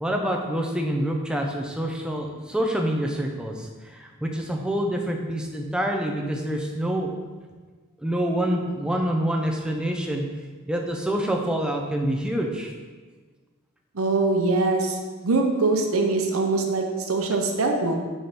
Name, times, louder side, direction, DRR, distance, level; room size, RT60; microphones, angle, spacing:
voice 1, 0.0-7.1 8.0-10.3 10.7-12.7, right 1 dB, 5° right, 1 dB, 0.6 m, -26 dB
voice 2, 13.9-15.0 15.2-18.0, right 3 dB, 80° right, 2 dB, 0.8 m, -23 dB
6.0 x 5.0 x 4.1 m, 1.4 s
head